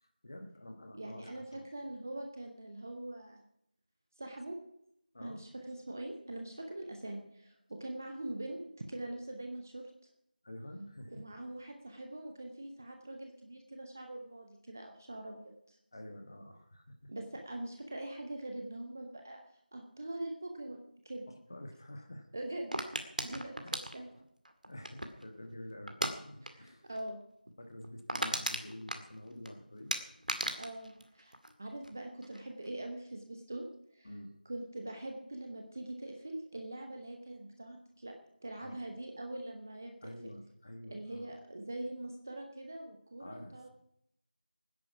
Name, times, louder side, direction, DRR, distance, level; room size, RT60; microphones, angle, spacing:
voice 1, 0.0-1.7 5.1-5.4 10.4-11.2 15.9-17.1 21.3-22.4 23.6-23.8 24.6-26.9 27.5-29.9 34.0-34.3 38.5-38.8 40.0-41.4 43.2-43.7, left 1 dB, 25° left, 6 dB, 1.5 m, -48 dB
voice 2, 0.9-3.4 4.2-4.6 5.2-8.6 8.9-9.9 11.1-15.8 17.1-19.4 19.7-20.8 21.0-21.3 22.3-22.9 23.2-23.6 23.9-24.1 26.4-27.2 30.6-31.3 31.6-33.7 33.9-34.1 34.4-38.1 38.4-39.9 40.9-43.7, right 1 dB, 15° right, 4 dB, 0.8 m, -43 dB
sound 1, 22.7-25.3 25.9-26.2 26.4-26.7 27.0-27.1 27.5-27.6 27.8-29.5 29.9-31.9 32.2-32.7, right 1 dB, 60° right, 2.1 m, -36 dB
18.0 x 10.5 x 6.0 m, 0.75 s
figure-of-eight pair, 175°, 5 cm